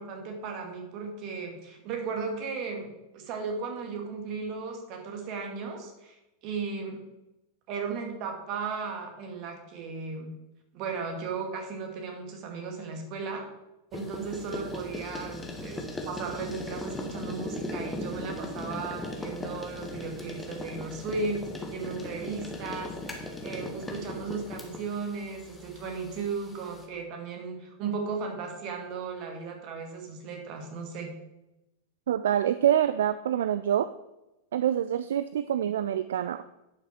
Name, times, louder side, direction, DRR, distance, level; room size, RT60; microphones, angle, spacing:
voice 1, 0.0-2.9 3.1-6.2 6.4-7.0 7.7-10.3 10.7-13.5 13.9-31.1, right 4 dB, 40° right, 2 dB, 2.1 m, -36 dB
sound 1, 13.9-26.9, left 1 dB, 10° left, 1.5 m, -38 dB
voice 2, 32.1-33.9 34.5-36.4, right 10 dB, 65° right, 13 dB, 0.3 m, -26 dB
10.5 x 6.1 x 4.4 m, 0.95 s
figure-of-eight pair, 90°, 0 cm